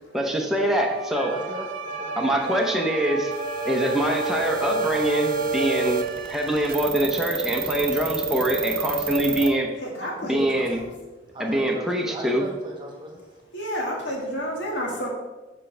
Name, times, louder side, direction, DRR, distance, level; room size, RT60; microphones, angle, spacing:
voice 1, 0.1-1.4 2.2-3.3 3.6-9.7 10.2-10.8 11.4-12.5, right 1 dB, ahead, 0 dB, 0.7 m, -24 dB
Bowed string instrument, 0.8-6.6, right 9 dB, 85° right, 0.5 m, -37 dB
Wind instrument woodwind instrument, 1.1-5.9, right 1 dB, 40° left, 1.5 m, -35 dB
voice 2, 1.2-2.1 11.3-13.2, right 1 dB, 25° right, 1 dB, 1.3 m, -36 dB
sound 1, 3.3-9.5, right 3 dB, 50° right, 0.8 m, -28 dB
voice 3, 9.8-10.9 13.5-15.1, equal, 75° left, -2 dB, 1.9 m, -30 dB
7.4 x 6.2 x 3.3 m, 1.2 s
head